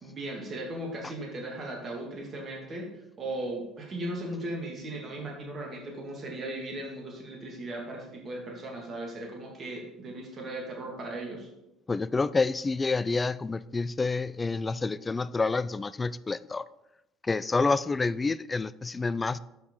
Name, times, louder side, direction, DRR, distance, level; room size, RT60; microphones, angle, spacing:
voice 1, 0.0-11.5, right 1 dB, 45° right, 0 dB, 2.0 m, -37 dB
voice 2, 11.9-16.6 17.3-19.4, left 3 dB, 25° left, 16 dB, 0.3 m, -28 dB
7.8 x 5.9 x 3.8 m, 0.90 s
hypercardioid pair, 60°, 0 cm